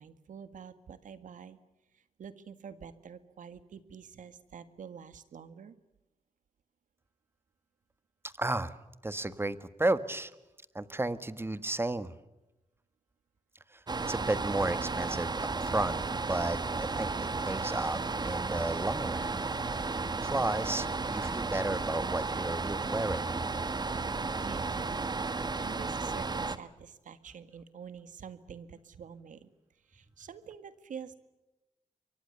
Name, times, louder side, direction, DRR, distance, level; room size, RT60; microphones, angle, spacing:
voice 1, 0.0-1.6 1.9-5.8 24.1-31.2, right 7 dB, 90° right, 12 dB, 1.8 m, -48 dB
voice 2, 8.2-8.7 9.0-10.3 10.7-12.2 13.7-13.8 14.1-15.3 15.6-16.0 16.3-19.9 20.2-23.3, right 2 dB, 20° right, 13 dB, 1.5 m, -33 dB
sound 1, 13.9-26.6, right 3 dB, 35° right, 1.4 m, -33 dB
28.5 x 24.0 x 6.9 m, 1.0 s
cardioid pair, 90°, 13 cm